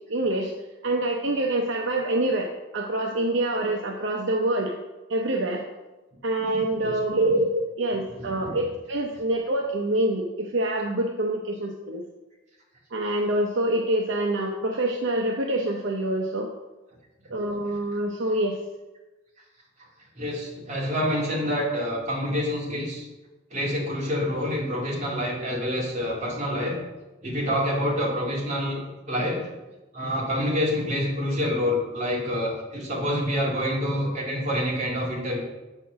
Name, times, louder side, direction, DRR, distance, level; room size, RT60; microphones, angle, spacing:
voice 1, 0.1-0.5 0.8-2.5 2.7-4.7 5.1-5.6 6.2-12.0 12.9-16.5 17.3-18.6, right 1 dB, 65° right, 1 dB, 0.7 m, -26 dB
voice 2, 20.2-23.1 23.5-26.8 27.2-28.8 29.1-29.5 29.9-35.4, equal, 35° right, -4 dB, 2.2 m, -27 dB
7.2 x 4.4 x 6.0 m, 1.1 s
head